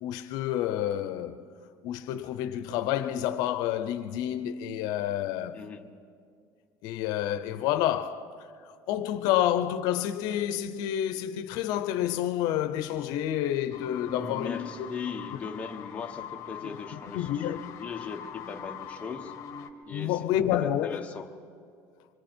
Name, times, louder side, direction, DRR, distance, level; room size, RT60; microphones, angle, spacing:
voice 1, 0.0-1.4 1.8-5.6 6.8-8.3 8.9-14.9 17.1-17.6 19.9-21.0, left 11 dB, 75° left, 0.7 m, -29 dB
voice 2, 5.5-6.0 14.0-19.3 19.8-20.2 20.5-21.3, left 5 dB, 20° left, 1.2 m, -39 dB
sound 1, 13.7-19.7, left 8 dB, 55° left, 1.5 m, -43 dB
25.5 x 24.0 x 4.4 m
cardioid pair, 150°, 7 cm